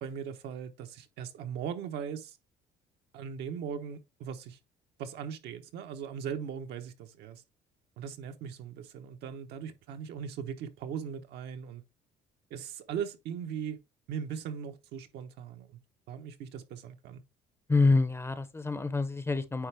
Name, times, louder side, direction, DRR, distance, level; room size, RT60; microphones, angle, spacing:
voice 1, 0.0-2.4 3.1-4.6 5.0-7.4 8.0-11.8 12.5-13.8 14.1-15.8 16.1-17.2, right 7 dB, 80° right, 1.0 m, -39 dB
voice 2, 17.7-19.7, left 3 dB, 15° left, 0.6 m, -26 dB
9.4 x 3.3 x 3.4 m
cardioid pair, 110°, 17 cm